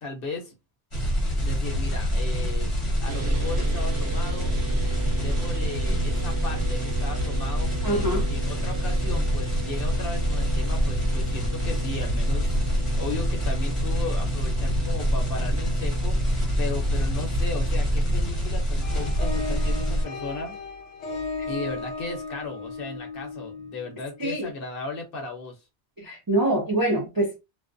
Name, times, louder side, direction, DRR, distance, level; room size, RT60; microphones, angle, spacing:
voice 1, 0.0-0.5 1.4-2.7 3.0-4.5 5.2-12.6 13.0-20.6 21.5-25.6, left 3 dB, 55° left, 0.9 m, -36 dB
sound 1, 0.9-20.0, equal, 30° left, 0.9 m, -26 dB
sound 2, 3.1-18.2, equal, 70° right, 0.9 m, -36 dB
voice 2, 7.8-8.3 24.2-24.5 26.0-27.4, right 1 dB, 30° right, 0.4 m, -25 dB
sound 3, 18.8-24.3, left 4 dB, 85° left, 1.0 m, -35 dB
2.3 x 2.1 x 2.5 m
omnidirectional pair, 1.2 m